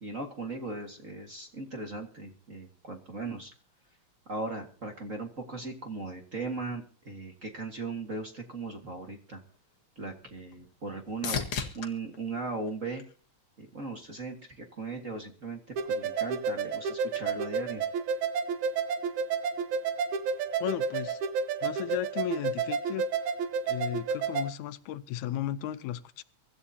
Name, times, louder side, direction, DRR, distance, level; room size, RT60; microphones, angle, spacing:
voice 1, 0.0-3.5 4.3-9.4 9.9-11.4 11.7-13.0 13.6-17.9, right 3 dB, 35° right, 3 dB, 1.6 m, -38 dB
sound 1, 9.5-13.7 14.2-14.8 22.7-22.8, left 6 dB, 50° left, 2.2 m, -39 dB
sound 2, 15.8-24.5, right 5 dB, 85° right, 2.6 m, -31 dB
voice 2, 20.6-21.2 21.6-23.1 23.6-26.2, left 12 dB, 85° left, 13 dB, 2.2 m, -35 dB
24.5 x 13.0 x 2.8 m, 0.42 s
omnidirectional pair, 3.3 m